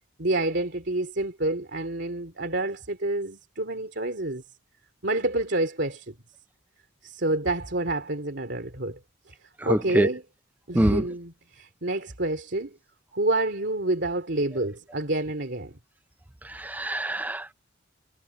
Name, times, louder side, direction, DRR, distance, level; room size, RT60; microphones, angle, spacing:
voice 1, 0.2-4.4 5.0-6.1 7.0-9.0 9.3-9.4 9.6-10.2 10.7-12.8 13.1-15.8, right 2 dB, 60° right, 2.8 m, -28 dB
voice 2, 9.7-10.1 10.7-11.0 16.6-17.5, right 1 dB, 10° right, 0.4 m, -24 dB
head